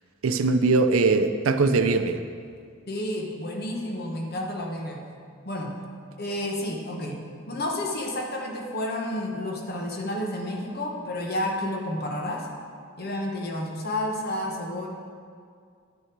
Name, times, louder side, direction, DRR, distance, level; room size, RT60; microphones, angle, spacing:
voice 1, 0.2-2.2, right 3 dB, 75° right, 9 dB, 0.5 m, -21 dB
voice 2, 2.9-5.1 5.4-5.8 6.2-12.5 13.0-14.9, left 1 dB, 50° left, 1 dB, 1.2 m, -31 dB
10.5 x 6.5 x 4.6 m, 2.2 s
head